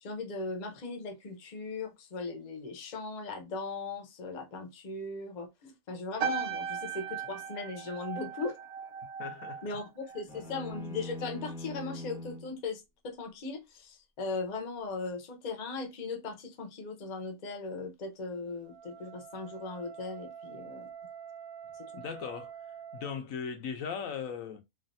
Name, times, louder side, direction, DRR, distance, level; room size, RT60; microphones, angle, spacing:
voice 1, 0.0-8.6 9.6-20.9 21.8-22.0, left 3 dB, 40° left, 0.7 m, -38 dB
sound 1, 6.2-10.8 11.1-11.5, right 7 dB, 80° right, 1.1 m, -38 dB
voice 2, 9.2-9.6 22.0-22.5 22.9-24.6, left 6 dB, 80° left, 1.0 m, -38 dB
sound 2, 10.3-12.5, left 1 dB, ahead, 0.7 m, -42 dB
Wind instrument woodwind instrument, 18.5-23.2, right 8 dB, 60° right, 0.8 m, -47 dB
3.2 x 2.5 x 2.5 m
omnidirectional pair, 1.4 m